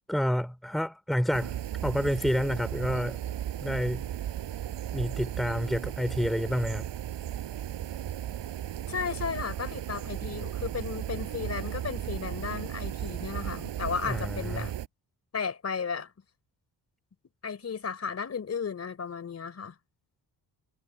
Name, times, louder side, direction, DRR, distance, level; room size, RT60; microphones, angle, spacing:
voice 1, 0.1-1.6 1.8-3.2 3.6-4.0 4.9-6.9 14.0-14.7, equal, ahead, 3.0 m, -29 dB
sound 1, 1.3-14.9, right 11 dB, 85° right, 5.7 m, -35 dB
voice 2, 8.9-14.7 15.3-16.1 17.4-19.7, left 6 dB, 35° left, 4.6 m, -34 dB
wide cardioid pair, 165°, 42 cm